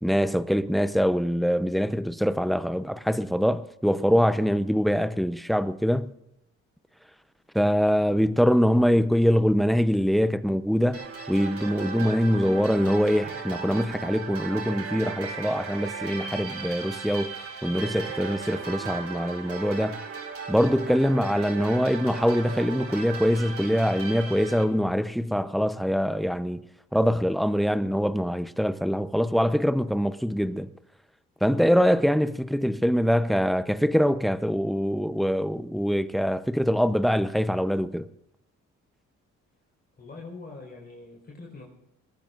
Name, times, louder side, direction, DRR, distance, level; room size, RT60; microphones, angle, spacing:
voice 1, 0.0-6.1 7.5-20.0 20.5-26.6 26.9-30.7 31.4-38.1, equal, ahead, 0.7 m, -24 dB
sound 1, 10.9-24.6, right 5 dB, 50° right, 3.7 m, -37 dB
voice 2, 40.0-41.7, left 3 dB, 30° left, 4.8 m, -43 dB
21.5 x 18.5 x 2.6 m
cardioid pair, 90°, 30 cm